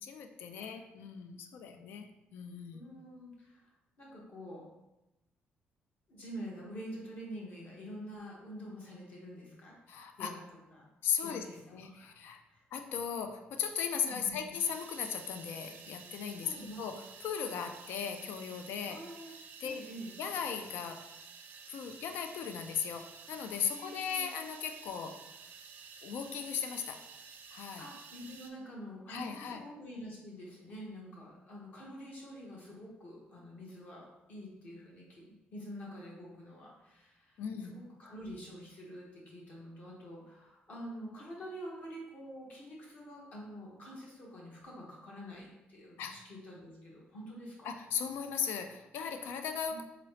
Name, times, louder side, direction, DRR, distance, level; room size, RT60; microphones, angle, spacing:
voice 1, 0.0-2.8 9.9-10.3 11.0-11.4 11.7-12.4 12.7-19.0 19.6-19.8 20.2-21.1 21.7-25.2 26.0-27.0 27.5-27.8 29.1-29.6 37.4-37.8 46.0-46.2 47.6-49.8, left 7 dB, 80° left, 7 dB, 0.4 m, -37 dB
voice 2, 2.7-3.7 4.0-4.7 6.1-9.8 10.2-10.4 10.7-10.8 11.2-12.1 12.5-12.6 13.9-14.4 16.4-16.8 18.8-19.3 19.6-20.2 23.7-24.2 27.8-47.7 49.7-49.8, equal, 45° left, -3 dB, 1.0 m, -47 dB
sound 1, 14.5-28.5, right 5 dB, 60° right, 0.4 m, -52 dB
3.8 x 2.9 x 3.1 m, 0.95 s
cardioid pair, 170°, 4 cm